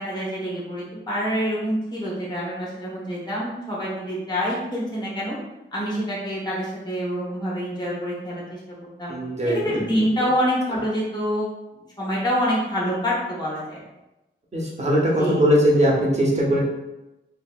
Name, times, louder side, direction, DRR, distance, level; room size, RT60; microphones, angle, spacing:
voice 1, 0.0-5.3 5.7-9.1 9.5-11.5 12.0-13.8 15.2-15.4, equal, 20° left, -6 dB, 0.9 m, -26 dB
voice 2, 9.1-9.8 14.5-16.6, equal, 30° right, -4 dB, 0.8 m, -20 dB
2.7 x 2.6 x 2.3 m, 0.96 s
wide cardioid pair, 100°, 21 cm